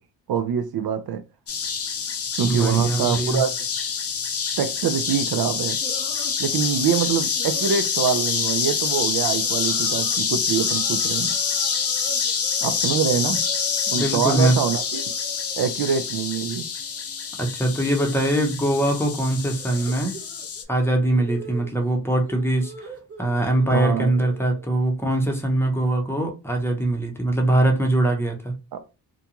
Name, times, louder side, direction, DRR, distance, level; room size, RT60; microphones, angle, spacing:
voice 1, 0.3-1.2 2.4-3.7 4.6-5.8 6.4-11.4 12.6-13.5 13.9-15.0 15.6-16.7 23.7-24.1 28.7-28.8, right 8 dB, 60° right, 0.5 m, -25 dB
sound 1, 1.5-20.6, left 6 dB, 35° left, 0.5 m, -26 dB
voice 2, 2.4-3.4 14.0-14.6 17.4-20.2 20.7-22.7 23.2-28.5, right 1 dB, 5° left, 0.7 m, -22 dB
sound 2, 5.8-7.0 7.4-7.7 8.2-8.4 8.8-9.1 9.4-10.2 10.6-14.0 14.3-15.6 15.9-16.3 16.6-24.8, right 2 dB, 35° right, 0.8 m, -43 dB
2.5 x 2.3 x 2.8 m
cardioid pair, 80°, 41 cm